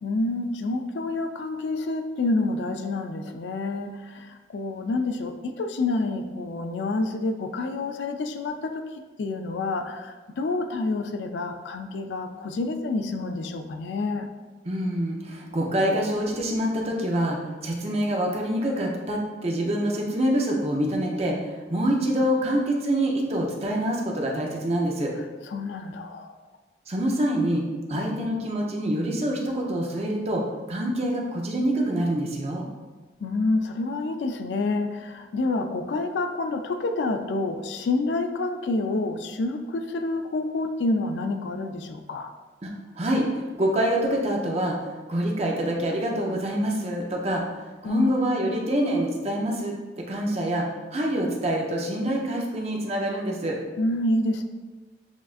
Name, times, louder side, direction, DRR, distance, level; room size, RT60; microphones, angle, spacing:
voice 1, 0.0-14.3 25.5-26.4 27.9-28.3 33.2-42.3 47.8-48.1 53.8-54.4, left 2 dB, 80° left, 7 dB, 0.4 m, -28 dB
voice 2, 14.7-17.4 17.6-25.1 26.9-27.6 27.9-32.6 42.6-42.7 43.0-44.8 45.1-53.6, right 1 dB, 35° right, -1 dB, 0.6 m, -26 dB
7.0 x 2.5 x 2.4 m, 1.3 s
head